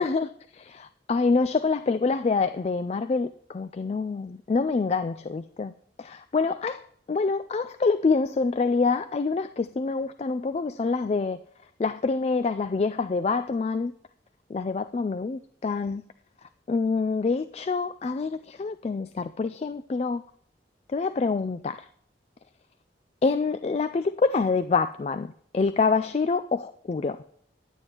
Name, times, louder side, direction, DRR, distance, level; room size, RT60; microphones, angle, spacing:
voice 1, 0.0-5.7 6.0-6.8 7.1-11.4 11.8-13.9 14.5-16.0 16.7-20.2 20.9-21.8 23.2-27.2, left 4 dB, 35° left, 0.3 m, -26 dB
11.0 x 8.8 x 2.9 m
head